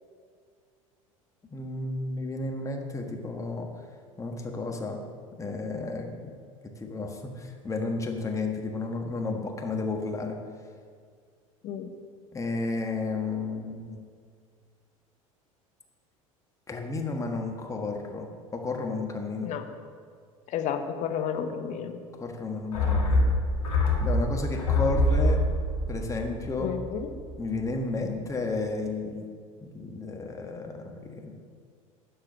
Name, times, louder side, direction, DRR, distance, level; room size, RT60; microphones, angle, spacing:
voice 1, 1.5-3.7 4.2-5.0 5.4-6.3 6.8-10.4 12.3-14.0 16.7-19.5 22.2-23.4 24.0-25.4 25.9-26.7 27.4-29.3 29.6-31.3, left 3 dB, 15° left, 2 dB, 1.4 m, -32 dB
voice 2, 20.5-22.0 26.6-27.1, left 8 dB, 45° left, 6 dB, 1.0 m, -31 dB
sound 1, 22.7-27.3 27.6-27.7, left 1 dB, 85° left, 1.8 m, -25 dB
11.5 x 4.8 x 6.4 m, 2.1 s
figure-of-eight pair, 70°, 18 cm